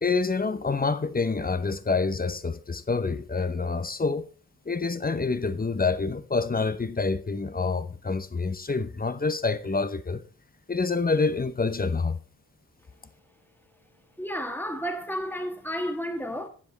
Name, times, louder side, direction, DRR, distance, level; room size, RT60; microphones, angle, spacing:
voice 1, 0.0-4.3 4.7-10.2 10.7-12.2, left 4 dB, 25° left, 0.8 m, -27 dB
voice 2, 14.2-16.5, equal, 5° left, 1.5 m, -31 dB
9.8 x 7.7 x 4.0 m
wide cardioid pair, 90°, 36 cm